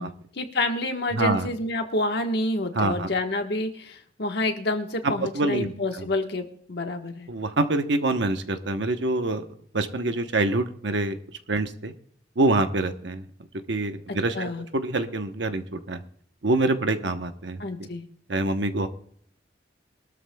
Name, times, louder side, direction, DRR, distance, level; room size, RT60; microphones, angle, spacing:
voice 1, 0.0-7.3 14.1-14.6 17.6-18.1, left 2 dB, 60° left, 4 dB, 1.3 m, -28 dB
voice 2, 1.1-1.5 2.7-3.1 5.0-5.7 6.0-6.1 7.3-9.5 9.7-11.2 11.5-11.9 12.4-13.2 13.7-16.0 16.4-17.9 18.3-18.9, right 2 dB, 70° right, 8 dB, 0.9 m, -25 dB
22.5 x 13.0 x 2.3 m, 0.62 s
head